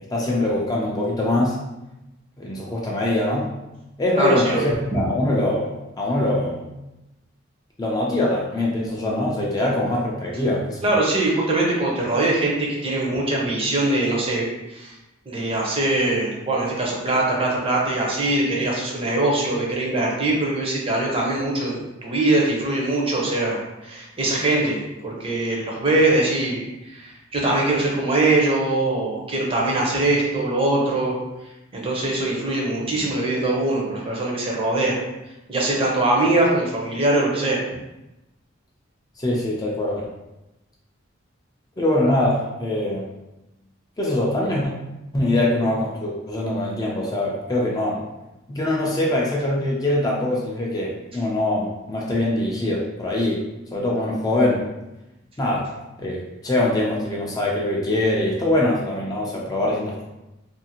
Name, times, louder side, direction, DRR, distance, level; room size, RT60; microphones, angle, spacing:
voice 1, 0.1-1.6 2.4-3.6 4.0-6.6 7.8-10.9 39.2-40.1 41.8-43.1 44.0-44.7 45.1-48.0 48.5-53.4 53.7-54.6 55.4-55.7 56.0-60.0, left 1 dB, 20° left, -3 dB, 0.4 m, -23 dB
voice 2, 4.2-4.6 10.8-12.5 12.8-14.4 14.7-14.9 15.3-31.1 31.7-35.0 35.5-37.6, right 2 dB, 30° right, -2 dB, 0.6 m, -22 dB
2.5 x 2.4 x 2.8 m, 0.97 s
head